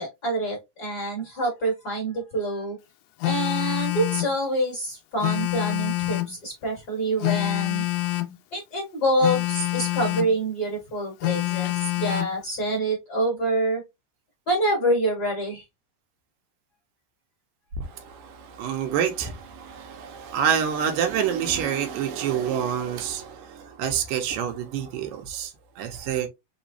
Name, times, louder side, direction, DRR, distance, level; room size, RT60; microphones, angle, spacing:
voice 1, 0.0-2.8 3.2-7.8 8.5-13.8 14.5-15.6, right 1 dB, 40° left, 1.5 m, -26 dB
Telephone, 3.2-4.4 5.2-6.4 7.2-8.4 9.2-10.4 11.2-12.4, left 19 dB, 85° left, 1.6 m, -26 dB
voice 2, 18.0-25.5 25.8-26.3, right 8 dB, 90° right, 2.6 m, -27 dB
5.4 x 3.0 x 2.7 m
omnidirectional pair, 3.7 m